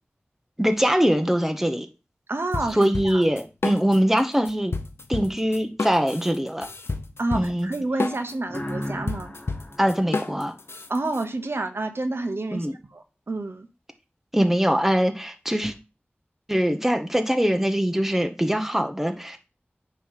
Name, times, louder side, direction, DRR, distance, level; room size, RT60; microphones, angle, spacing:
voice 1, 0.6-1.9 2.7-4.7 5.1-6.7 7.3-7.7 9.8-10.5 12.5-12.7 14.3-15.7 16.5-19.5, equal, 5° right, 1.0 m, -22 dB
voice 2, 2.3-2.8 3.0-3.2 7.2-9.3 10.9-13.7, right 2 dB, 75° right, 1.0 m, -29 dB
sound 1, 2.5-4.2 4.5-11.2, left 3 dB, 90° left, 0.7 m, -31 dB
sound 2, 8.5-11.2, left 1 dB, 40° left, 1.7 m, -36 dB
9.3 x 3.2 x 5.7 m
wide cardioid pair, 55°, 4 cm